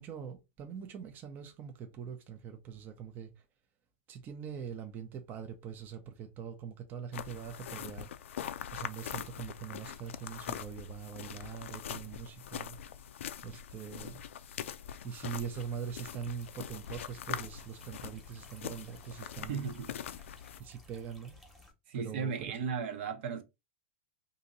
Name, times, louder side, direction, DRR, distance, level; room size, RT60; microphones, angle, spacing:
voice 1, 0.0-3.4 4.1-8.1 8.7-12.8 13.4-14.2 15.0-19.7 20.6-21.4 21.9-22.6, right 7 dB, 30° right, 0.6 m, -43 dB
sound 1, 7.1-20.6, left 9 dB, 85° left, 0.4 m, -43 dB
sound 2, 15.9-21.7, left 2 dB, ahead, 1.0 m, -58 dB
voice 2, 19.4-19.9 21.9-23.4, right 6 dB, 60° right, 0.8 m, -36 dB
2.8 x 2.6 x 3.9 m
hypercardioid pair, 135°, 7 cm